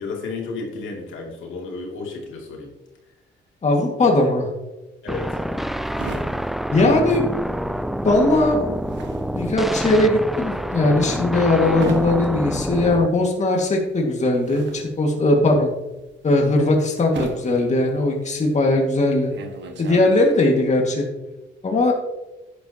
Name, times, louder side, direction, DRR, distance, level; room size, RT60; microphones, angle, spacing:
voice 1, 0.0-2.7 5.0-5.4, left 3 dB, 80° left, 0 dB, 2.8 m, -32 dB
voice 2, 3.6-4.5 6.7-7.3 8.0-8.6 9.3-15.7 16.2-19.3 19.8-21.1 21.6-21.9, left 2 dB, 35° left, 1 dB, 2.1 m, -19 dB
sound 1, 5.1-13.1, equal, ahead, 0.4 m, -27 dB
sound 2, 5.1-7.7 7.9-20.6, right 3 dB, 65° right, 1.7 m, -37 dB
10.5 x 10.5 x 3.0 m, 1.0 s
cardioid pair, 90°, 20 cm